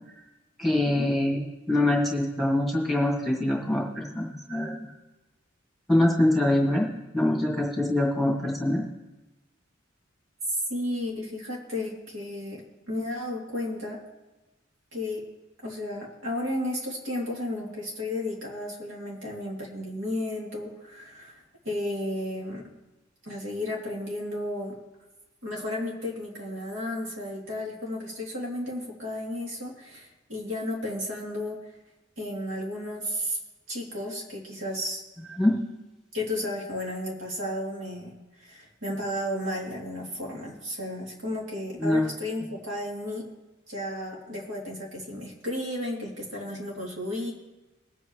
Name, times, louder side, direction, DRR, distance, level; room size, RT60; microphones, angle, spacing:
voice 1, 0.6-4.8 5.9-6.9 7.1-8.9 35.4-35.6 41.8-42.1, left 1 dB, ahead, -2 dB, 2.2 m, -24 dB
voice 2, 10.5-14.0 14.9-15.2 15.6-22.6 23.2-24.8 25.4-31.6 32.2-33.4 33.7-35.0 36.1-43.3 43.7-47.3, left 1 dB, 70° right, -3 dB, 2.9 m, -33 dB
22.0 x 8.2 x 3.1 m, 1.1 s
head